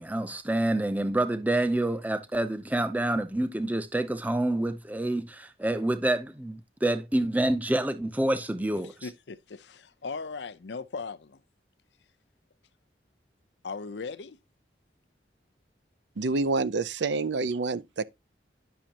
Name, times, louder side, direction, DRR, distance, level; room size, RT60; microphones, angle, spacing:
voice 1, 0.0-9.1, right 1 dB, 10° right, 0.6 m, -27 dB
voice 2, 9.0-9.4 10.0-11.2 13.6-14.4, left 4 dB, 80° left, 0.6 m, -36 dB
voice 3, 16.2-18.1, right 3 dB, 85° right, 0.5 m, -27 dB
10.5 x 6.2 x 2.9 m
head